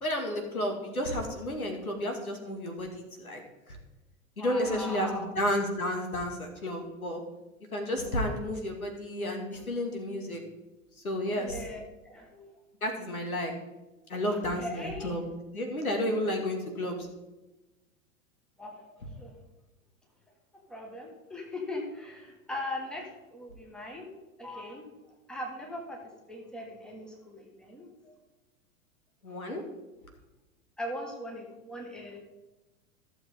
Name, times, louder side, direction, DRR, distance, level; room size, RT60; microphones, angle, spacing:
voice 1, 0.0-3.4 3.7-3.8 4.4-7.2 7.7-10.4 11.0-11.6 12.8-13.5 14.1-15.2 15.5-17.0 29.2-29.6, left 1 dB, 80° left, 3 dB, 2.3 m, -31 dB
voice 2, 4.4-5.3 11.3-12.5 14.3-15.1 18.6-19.4 20.7-24.1 24.4-24.9 25.3-26.0 26.3-28.1 29.3-29.4 30.8-32.2, left 1 dB, ahead, 0 dB, 1.8 m, -40 dB
14.5 x 7.1 x 3.7 m, 1.0 s
figure-of-eight pair, 95°, 42 cm